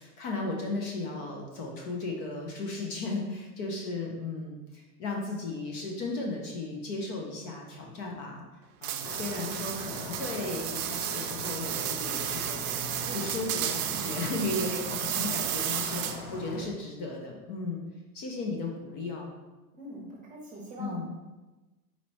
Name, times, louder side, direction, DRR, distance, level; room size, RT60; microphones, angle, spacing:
voice 1, 0.0-8.4 8.8-12.8 13.1-17.8 18.1-19.3 20.8-21.1, left 3 dB, 40° left, 0 dB, 0.7 m, -35 dB
sound 1, 8.8-16.4, right 11 dB, 75° right, 0.6 m, -33 dB
sound 2, 9.0-16.6, left 2 dB, 65° left, 1.0 m, -41 dB
voice 2, 13.0-13.4 13.8-14.2 19.7-21.0, right 1 dB, 15° right, -3 dB, 0.8 m, -43 dB
4.2 x 2.9 x 4.2 m, 1.1 s
supercardioid pair, 155°, 46 cm